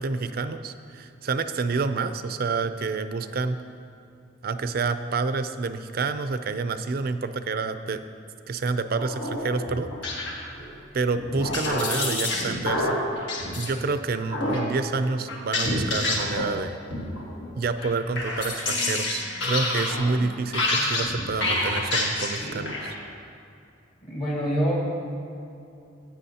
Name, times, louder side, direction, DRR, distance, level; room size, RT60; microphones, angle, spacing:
voice 1, 0.0-3.6 4.4-8.0 8.5-9.9 10.9-13.0 13.6-16.8 17.5-22.9, right 4 dB, 55° right, 10 dB, 0.4 m, -28 dB
sound 1, 9.0-10.7 11.2-13.7 14.3-14.7 15.3-16.6 16.9-17.5 17.8-23.0, left 2 dB, 75° left, 1.6 m, -28 dB
voice 2, 24.0-24.8, equal, 40° left, -5 dB, 1.8 m, -26 dB
14.5 x 8.5 x 2.8 m, 2.6 s
head